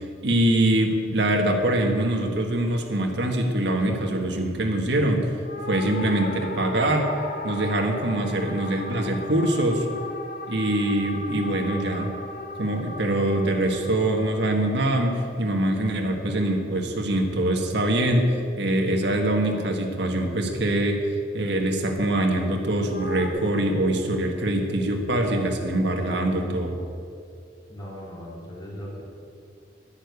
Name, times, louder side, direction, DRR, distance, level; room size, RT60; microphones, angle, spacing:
voice 1, 0.0-5.3 5.7-7.1 7.4-9.9 10.5-12.1 12.6-21.0 21.3-26.8, right 1 dB, 70° right, 3 dB, 1.7 m, -24 dB
sound 1, 5.4-16.0 22.9-23.3, left 3 dB, 55° left, 1.4 m, -37 dB
voice 2, 27.7-29.0, equal, 25° left, -4 dB, 3.5 m, -38 dB
11.5 x 10.5 x 8.3 m, 2.4 s
head